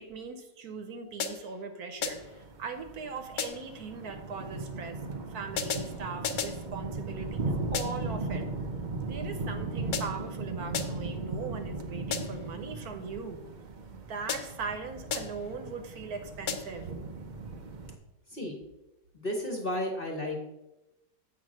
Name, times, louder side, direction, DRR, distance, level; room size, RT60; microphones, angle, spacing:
voice 1, 0.0-5.0 5.3-8.5 9.0-13.4 13.9-16.9, right 4 dB, 65° right, 7 dB, 1.2 m, -40 dB
sound 1, 1.2-1.6 2.0-2.4 3.4-3.8 5.6-6.7 7.7-8.2 9.9-10.3 10.7-11.2 12.1-12.5 14.3-14.7 15.1-15.5 16.5-16.9, left 6 dB, 65° left, 1.2 m, -35 dB
sound 2, 2.0-18.0, right 3 dB, 85° right, 0.4 m, -38 dB
voice 2, 19.1-20.5, left 1 dB, 40° left, 1 dB, 1.0 m, -33 dB
7.8 x 4.5 x 6.1 m, 0.96 s
omnidirectional pair, 1.9 m